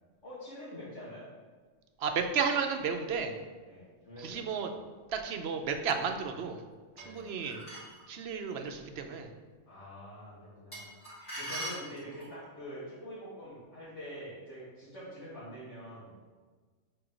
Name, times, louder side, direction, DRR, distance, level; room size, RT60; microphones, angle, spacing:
voice 1, 0.2-1.3 3.6-4.8 6.9-7.6 9.7-10.9 11.4-16.2, equal, 80° left, -12 dB, 2.3 m, -46 dB
voice 2, 2.0-3.3 4.2-4.7 5.1-6.6 7.1-7.6 8.1-9.3, right 6 dB, 65° right, 5 dB, 0.9 m, -33 dB
sound 1, 7.0-8.0 10.7-12.4, right 1 dB, 45° left, 2.4 m, -41 dB
5.0 x 4.5 x 6.1 m, 1.4 s
omnidirectional pair, 1.2 m